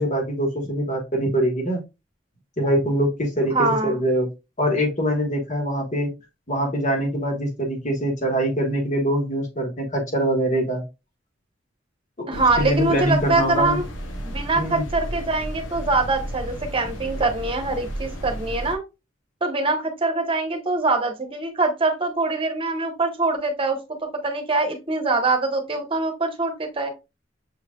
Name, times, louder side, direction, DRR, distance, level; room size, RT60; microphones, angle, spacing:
voice 1, 0.0-1.8 2.6-4.3 4.6-6.1 6.5-10.8 12.3-13.8 14.5-14.8, equal, 40° left, 2 dB, 1.5 m, -23 dB
voice 2, 3.5-3.9 12.3-13.8 14.2-18.8 19.4-26.9, right 3 dB, 30° right, 4 dB, 1.1 m, -23 dB
sound 1, 12.3-18.8, equal, 85° left, 1.0 m, -33 dB
6.6 x 3.2 x 2.3 m, 0.26 s
head